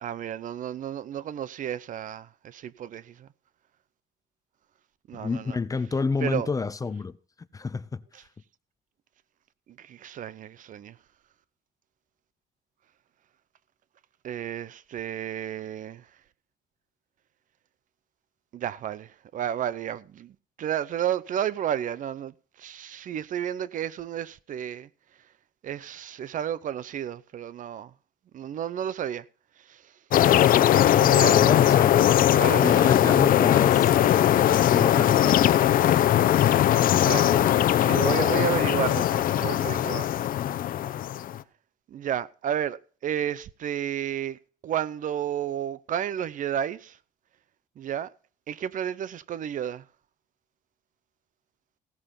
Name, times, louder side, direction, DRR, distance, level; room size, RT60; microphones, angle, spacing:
voice 1, 0.0-3.3 5.1-5.6 6.2-6.5 8.1-8.2 9.8-11.0 14.2-16.0 18.5-24.9 25.6-27.9 28.3-29.2 29.7-29.8 31.0-31.4 32.3-32.9 36.9-40.1 41.9-44.4 44.6-47.0 47.8-48.1 48.5-49.8, right 10 dB, 50° right, 0.6 m, -32 dB
voice 2, 5.1-7.2 7.5-8.0 31.3-32.1 32.6-35.5, left 4 dB, 20° left, 0.6 m, -29 dB
sound 1, 30.1-41.4, left 12 dB, 55° left, 0.8 m, -20 dB
16.5 x 6.8 x 5.7 m
cardioid pair, 110°, 17 cm